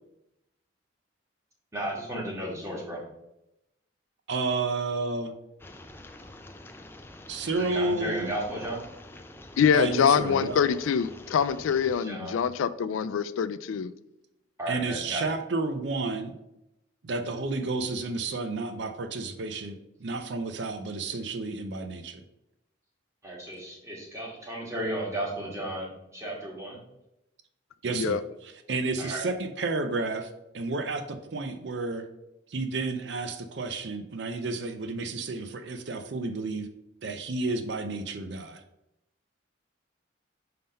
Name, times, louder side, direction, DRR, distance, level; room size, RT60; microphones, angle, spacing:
voice 1, 1.7-3.0 7.6-8.8 12.0-12.3 14.6-15.3 23.2-26.8 29.0-29.2, right 1 dB, 15° right, -3 dB, 1.6 m, -34 dB
voice 2, 4.3-5.3 7.3-8.3 9.7-10.6 14.7-16.3 17.0-22.2 27.8-28.2 28.7-32.0 32.5-36.7 37.0-38.6, right 3 dB, 60° right, 7 dB, 0.5 m, -31 dB
sound 1, 5.6-12.0, left 1 dB, 10° left, 0.4 m, -47 dB
voice 3, 9.6-13.9 27.9-28.2, left 7 dB, 85° left, 15 dB, 0.3 m, -25 dB
5.7 x 3.7 x 5.2 m, 0.87 s
head